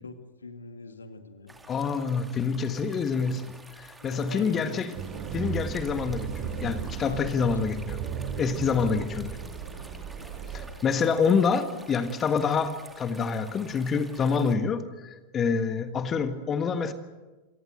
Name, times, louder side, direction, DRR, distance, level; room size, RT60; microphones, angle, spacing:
voice 1, 0.4-1.6 3.9-4.9 7.0-7.5, left 3 dB, 75° left, 8 dB, 2.0 m, -42 dB
sound 1, 1.5-14.6, right 2 dB, 10° right, 2.6 m, -50 dB
voice 2, 1.7-3.4 3.8-4.9 5.3-8.0 8.4-9.4 10.5-16.9, left 5 dB, 25° left, 10 dB, 1.5 m, -27 dB
sound 2, 4.9-10.7, right 6 dB, 40° right, 3.8 m, -35 dB
28.0 x 18.0 x 8.0 m, 1.2 s
figure-of-eight pair, 90°, 0 cm